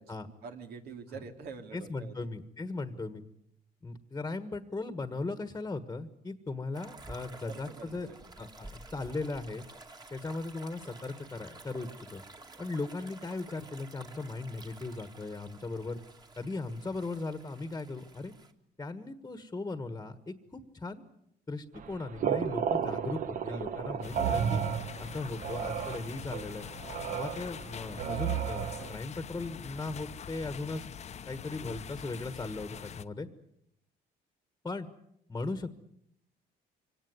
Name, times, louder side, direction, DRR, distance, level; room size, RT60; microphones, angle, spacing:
voice 1, 0.0-2.3 7.5-8.2 23.5-24.2, right 5 dB, 70° right, 5 dB, 2.8 m, -46 dB
voice 2, 1.7-3.2 3.8-8.1 8.4-9.6 10.1-12.2 12.6-16.0 16.4-18.3 18.8-21.0 21.5-24.6 25.0-26.6 27.1-30.9 31.3-33.3 34.6-34.9 35.3-35.8, left 3 dB, 15° left, 11 dB, 1.5 m, -38 dB
sound 1, 6.7-18.5, right 2 dB, 25° right, 2.2 m, -51 dB
sound 2, 21.7-29.0, right 8 dB, 55° right, 1.3 m, -33 dB
sound 3, 24.0-33.0, left 8 dB, 40° left, 0.9 m, -44 dB
24.5 x 18.0 x 9.5 m, 0.75 s
cardioid pair, 110°, 17 cm